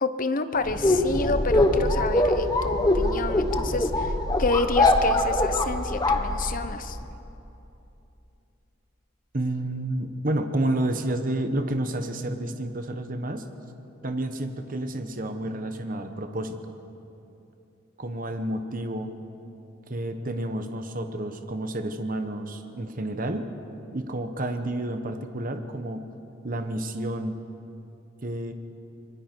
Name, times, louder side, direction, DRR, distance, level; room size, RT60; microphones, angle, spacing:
voice 1, 0.0-4.1 4.4-7.0, left 3 dB, 45° left, 10 dB, 0.9 m, -29 dB
sound 1, 0.6-6.9, left 1 dB, 20° left, 1.3 m, -23 dB
voice 2, 9.3-13.4 14.0-16.7 18.0-19.1 19.9-23.4 23.9-26.0 26.4-27.4 28.2-28.5, right 1 dB, 45° right, 7 dB, 1.1 m, -30 dB
25.5 x 22.0 x 4.6 m, 2.9 s
head